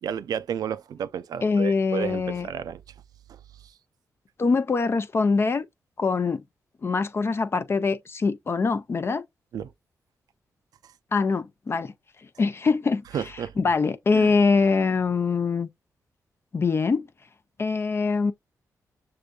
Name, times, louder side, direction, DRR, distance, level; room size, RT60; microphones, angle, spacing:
voice 1, 0.0-2.8 3.3-3.4 9.5-9.7 13.1-13.5 14.1-14.3, right 8 dB, 80° right, 0.4 m, -32 dB
voice 2, 1.4-2.5 4.4-5.6 6.0-6.4 6.8-9.2 11.1-11.9 12.4-13.0 13.6-15.7 16.5-17.1 17.6-18.3, left 4 dB, 40° left, 0.4 m, -23 dB
6.5 x 2.5 x 2.2 m
cardioid pair, 70°, 6 cm